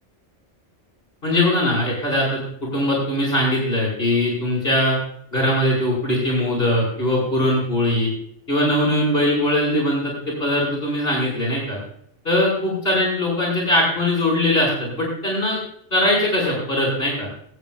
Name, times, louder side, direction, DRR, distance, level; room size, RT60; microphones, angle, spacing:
voice 1, 1.2-5.0 5.3-8.1 8.5-11.8 12.2-15.6 15.9-17.3, left 1 dB, 55° left, -4 dB, 5.7 m, -21 dB
21.5 x 9.5 x 2.4 m, 0.68 s
omnidirectional pair, 1.2 m